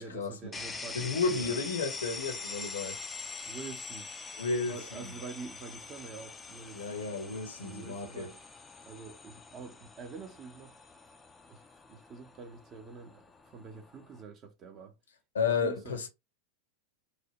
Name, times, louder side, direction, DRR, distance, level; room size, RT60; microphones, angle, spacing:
voice 1, 0.0-1.6 3.5-4.1 4.6-7.2 7.6-8.4 8.8-10.8 11.5-15.0 15.4-16.1, right 4 dB, 30° right, 0.7 m, -46 dB
sound 1, 0.5-14.2, left 4 dB, 15° left, 0.4 m, -44 dB
voice 2, 0.9-3.0 4.3-4.8 6.7-8.3 15.3-16.1, left 5 dB, 65° left, 0.7 m, -32 dB
3.2 x 2.1 x 2.8 m
figure-of-eight pair, 90°, 0 cm